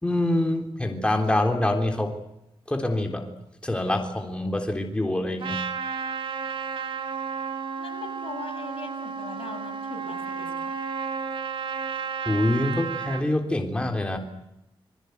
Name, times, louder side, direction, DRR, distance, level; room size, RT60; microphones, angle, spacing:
voice 1, 0.0-2.2 2.7-3.3 3.6-5.6 12.3-14.2, left 1 dB, 10° left, 3 dB, 3.5 m, -25 dB
Trumpet, 5.4-13.2, right 6 dB, 65° right, 3.3 m, -32 dB
voice 2, 7.8-10.7, left 5 dB, 75° left, 4 dB, 6.9 m, -40 dB
27.5 x 22.5 x 8.2 m, 0.84 s
wide cardioid pair, 125°, 9 cm